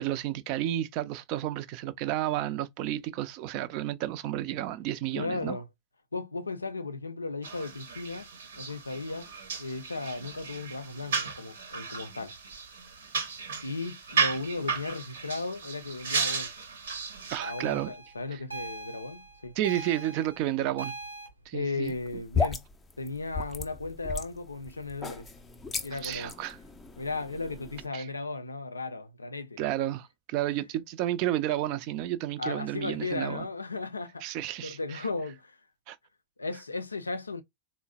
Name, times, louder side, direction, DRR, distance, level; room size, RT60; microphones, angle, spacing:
voice 1, 0.0-5.6 17.3-17.9 18.3-18.4 19.6-20.9 21.5-21.9 25.9-26.6 27.9-28.1 29.6-33.5 34.2-35.1 35.9-36.0, right 13 dB, 45° right, 0.4 m, -31 dB
voice 2, 5.1-5.7 6.1-8.3 8.6-9.3 9.6-12.3 13.6-16.5 17.4-19.6 21.5-22.6 23.0-25.3 25.8-26.3 27.0-29.6 32.4-34.3 34.6-35.6 36.4-37.4, left 3 dB, 80° left, 0.4 m, -35 dB
sound 1, 7.4-17.4, right 5 dB, 65° right, 0.8 m, -34 dB
sound 2, 17.4-21.3, right 3 dB, 90° right, 1.0 m, -41 dB
sound 3, 21.8-27.9, left 5 dB, 15° left, 0.5 m, -35 dB
3.8 x 2.0 x 2.4 m
figure-of-eight pair, 90°, 0 cm